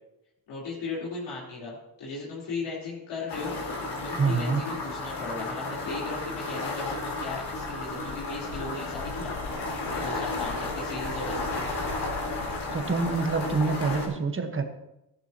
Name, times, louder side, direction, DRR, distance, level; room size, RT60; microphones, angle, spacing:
voice 1, 0.5-3.6 4.0-11.6, left 3 dB, 85° left, -8 dB, 3.8 m, -37 dB
sound 1, 3.3-14.1, left 2 dB, 70° left, 3.9 m, -33 dB
voice 2, 4.2-4.6 12.7-14.6, right 4 dB, 30° right, 6 dB, 1.3 m, -26 dB
15.0 x 11.0 x 2.9 m, 0.87 s
cardioid pair, 125°, 42 cm